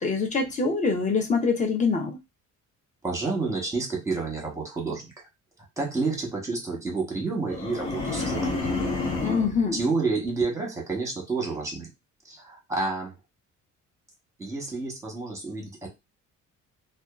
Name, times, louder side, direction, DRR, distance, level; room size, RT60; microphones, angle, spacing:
voice 1, 0.0-2.2 9.2-9.8, left 4 dB, 25° left, 0.6 m, -24 dB
voice 2, 3.0-5.3 5.8-8.5 9.7-11.9 12.2-13.1 14.4-15.9, right 3 dB, 10° right, 1.0 m, -29 dB
sound 1, 7.5-9.6, left 3 dB, 80° left, 0.9 m, -29 dB
2.6 x 2.3 x 2.3 m
cardioid pair, 125°, 31 cm